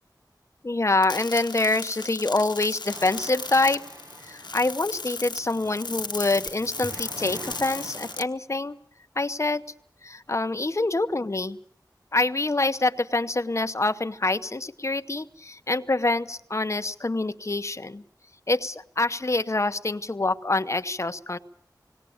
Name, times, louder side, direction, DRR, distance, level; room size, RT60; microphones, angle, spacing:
voice 1, 0.6-3.8 4.2-8.8 9.2-9.6 10.0-11.6 12.1-18.0 18.5-21.4, left 2 dB, 40° left, 10 dB, 0.9 m, -26 dB
sound 1, 1.0-8.2, left 3 dB, 80° left, 1.2 m, -36 dB
sound 2, 2.9-8.2, right 1 dB, 50° right, 1.7 m, -45 dB
19.5 x 17.5 x 8.6 m, 0.66 s
wide cardioid pair, 55°, 7 cm